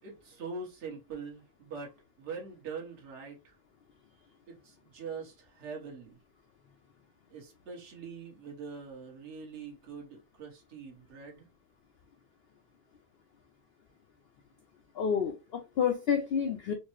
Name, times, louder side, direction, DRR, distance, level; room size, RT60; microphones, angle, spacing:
voice 1, 0.0-3.6 4.5-6.2 7.3-11.5, right 5 dB, 60° right, 1.4 m, -43 dB
voice 2, 15.0-16.7, left 7 dB, 60° left, 0.6 m, -29 dB
4.4 x 2.0 x 2.9 m
omnidirectional pair, 1.4 m